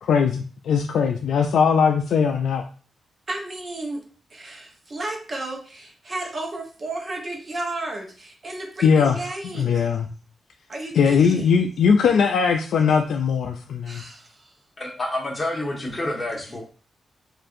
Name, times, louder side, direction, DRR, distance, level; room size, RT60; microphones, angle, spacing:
voice 1, 0.0-2.6 8.8-9.2 9.5-10.1 10.9-14.0, left 6 dB, 85° left, 3 dB, 0.3 m, -20 dB
voice 2, 3.3-4.0 4.3-9.9 10.7-11.6 13.9-14.5, right 2 dB, 35° right, 2 dB, 0.9 m, -33 dB
voice 3, 14.8-16.6, left 1 dB, 25° left, -2 dB, 1.3 m, -28 dB
4.4 x 2.5 x 2.6 m, 0.40 s
cardioid pair, 115°, 0 cm